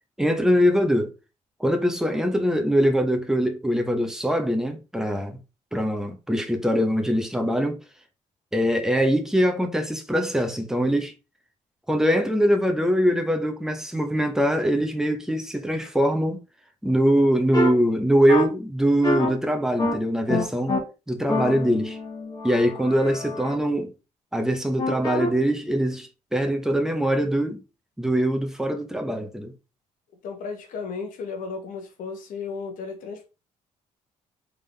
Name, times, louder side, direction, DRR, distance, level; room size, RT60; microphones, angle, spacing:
voice 1, 0.2-1.1 1.6-5.4 5.7-7.8 8.5-11.1 11.9-16.4 16.8-20.8 21.1-22.0 22.4-23.9 24.3-27.6 28.0-29.5, equal, 5° right, 0.8 m, -23 dB
sound 1, 17.5-17.7 18.3-18.4 19.0-19.3 19.8-19.9 20.3-20.8 21.3-23.5 24.8-25.3, left 2 dB, 30° left, 1.3 m, -27 dB
voice 2, 30.2-33.3, left 5 dB, 80° left, 1.0 m, -34 dB
3.7 x 3.6 x 3.3 m
cardioid pair, 110°, 14 cm